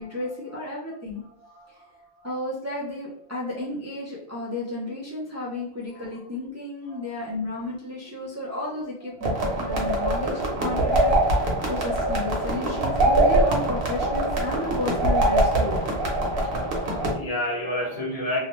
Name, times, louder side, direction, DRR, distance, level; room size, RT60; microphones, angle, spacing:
voice 1, 0.0-1.2 1.7-1.8 2.2-15.8, left 2 dB, 20° right, -6 dB, 0.4 m, -33 dB
voice 2, 1.4-2.3 5.9-6.1 6.9-7.3 8.2-8.4 9.4-10.0 10.4-10.7 16.4-16.6 16.9-18.4, left 1 dB, 40° left, -4 dB, 0.8 m, -33 dB
sound 1, 9.2-17.1, right 1 dB, 65° right, 1.0 m, -23 dB
2.7 x 2.1 x 3.0 m, 0.74 s
omnidirectional pair, 1.1 m